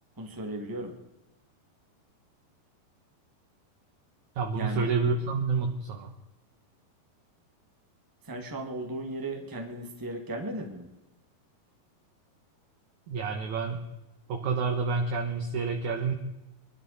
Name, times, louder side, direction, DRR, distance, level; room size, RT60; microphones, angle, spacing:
voice 1, 0.2-0.9 4.5-4.9 8.2-10.9, right 1 dB, 25° right, 2 dB, 0.4 m, -36 dB
voice 2, 4.4-6.1 13.1-13.9 14.3-16.1, right 4 dB, 65° right, 3 dB, 2.0 m, -29 dB
24.0 x 12.5 x 4.2 m, 0.99 s
omnidirectional pair, 4.8 m